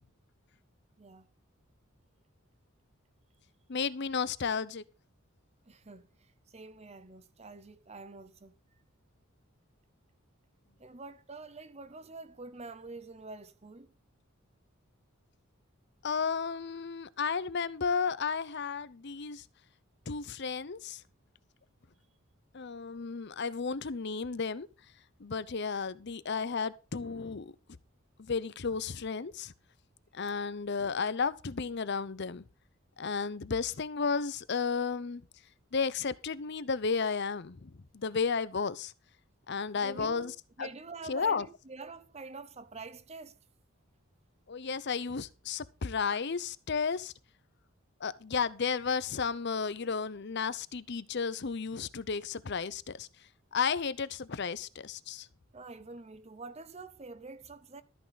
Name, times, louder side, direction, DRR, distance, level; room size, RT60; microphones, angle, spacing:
voice 1, 3.7-4.8 16.0-19.4 20.1-21.0 22.5-24.7 25.2-27.5 28.2-29.5 30.1-32.4 33.0-35.2 35.7-38.9 39.5-40.7 41.0-41.5 44.5-47.1 48.0-53.1 53.5-55.3, left 5 dB, 55° left, 0.7 m, -33 dB
voice 2, 5.7-8.5 10.8-13.9 39.7-40.3 40.6-43.4 55.5-57.8, right 3 dB, 30° right, 0.8 m, -46 dB
13.5 x 9.2 x 4.0 m
head